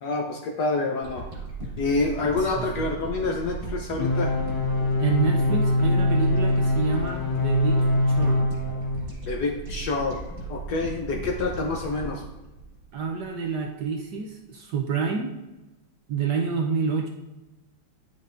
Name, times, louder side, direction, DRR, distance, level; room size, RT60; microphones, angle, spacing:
voice 1, 0.0-1.3 1.8-4.4 9.3-10.2 10.5-12.2, left 3 dB, 65° left, 1 dB, 1.0 m, -27 dB
sound 1, 1.0-13.4 13.8-13.9, right 2 dB, 30° right, 1.4 m, -37 dB
voice 2, 2.4-2.9 4.6-8.4 12.9-15.3 16.1-17.1, right 5 dB, 70° right, 1 dB, 1.1 m, -28 dB
sound 2, 4.0-9.0, left 1 dB, 85° left, 2.2 m, -23 dB
10.0 x 5.4 x 2.5 m, 1.0 s
omnidirectional pair, 2.3 m